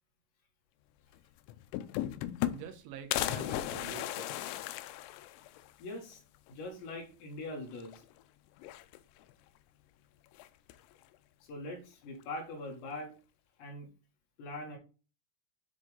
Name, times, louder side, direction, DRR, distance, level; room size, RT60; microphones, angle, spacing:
sound 1, 1.1-1.2 1.5-2.8 3.1-5.7 6.1-6.2 6.5-6.6 7.7-8.2 8.6-9.3 10.4-10.9, left 14 dB, 85° left, 2.6 m, -36 dB
voice 1, 2.5-4.7, right 9 dB, 80° right, 8 dB, 3.3 m, -47 dB
voice 2, 5.8-6.2 6.5-8.0 11.4-13.1 13.6-13.9 14.4-14.8, left 2 dB, 65° left, 1 dB, 3.8 m, -42 dB
10.0 x 3.6 x 3.8 m, 0.33 s
omnidirectional pair, 5.8 m